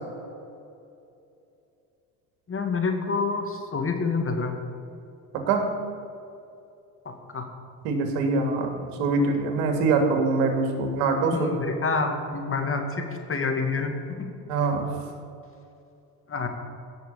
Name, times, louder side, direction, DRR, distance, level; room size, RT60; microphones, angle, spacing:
voice 1, 2.5-4.6 7.3-7.4 11.3-14.3 16.3-16.5, left 4 dB, 30° left, 4 dB, 2.3 m, -27 dB
voice 2, 5.3-5.7 7.8-8.7 9.0-11.5 14.5-15.0, right 3 dB, 75° right, 4 dB, 2.6 m, -24 dB
16.5 x 6.5 x 8.6 m, 2.6 s
supercardioid pair, 90°, 46 cm